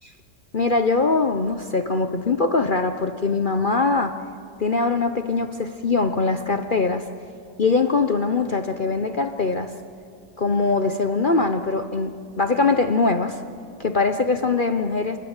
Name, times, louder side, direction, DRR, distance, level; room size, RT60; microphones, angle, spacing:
voice 1, 0.5-4.2 4.6-7.0 7.6-9.7 10.4-13.4 13.8-15.2, left 3 dB, 45° left, 8 dB, 0.7 m, -22 dB
29.0 x 20.0 x 8.9 m, 2.4 s
omnidirectional pair, 1.9 m